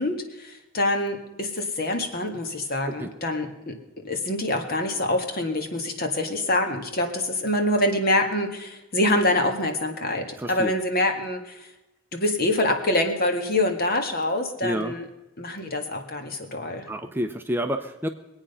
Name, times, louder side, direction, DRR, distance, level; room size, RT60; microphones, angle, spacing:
voice 1, 0.0-3.7 4.0-11.7 12.1-15.0 15.4-16.9, left 1 dB, 45° left, 5 dB, 1.9 m, -25 dB
voice 2, 10.4-10.7 14.6-14.9 16.9-18.1, equal, 10° right, 6 dB, 0.6 m, -28 dB
22.5 x 8.9 x 5.6 m, 0.99 s
head